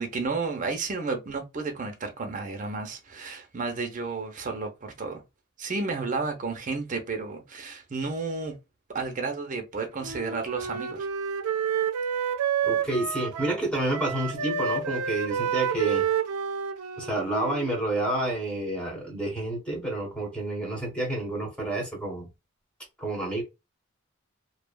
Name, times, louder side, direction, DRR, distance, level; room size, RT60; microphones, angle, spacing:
voice 1, 0.0-5.2 5.6-8.5 8.9-11.1, right 4 dB, 35° right, 0.6 m, -32 dB
Wind instrument woodwind instrument, 10.0-13.7 13.9-17.8, right 7 dB, 90° right, 0.3 m, -29 dB
voice 2, 12.6-16.1 17.0-22.3 23.0-23.4, right 2 dB, 5° left, 1.0 m, -29 dB
2.6 x 2.3 x 2.2 m
head